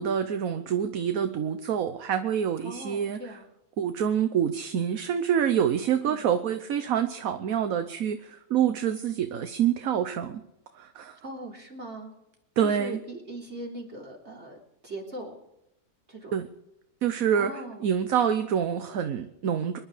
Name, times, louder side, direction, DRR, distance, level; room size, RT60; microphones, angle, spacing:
voice 1, 0.0-3.2 3.8-10.4 10.7-11.2 12.6-13.0 16.3-16.5 17.0-17.5 17.8-19.8, right 8 dB, 75° right, 9 dB, 1.3 m, -26 dB
voice 2, 2.6-3.5 6.0-6.3 11.2-12.1 12.6-15.4 16.1-16.3 17.3-17.9, right 1 dB, 50° right, 0 dB, 3.8 m, -40 dB
25.0 x 11.0 x 5.0 m, 0.87 s
omnidirectional pair, 1.5 m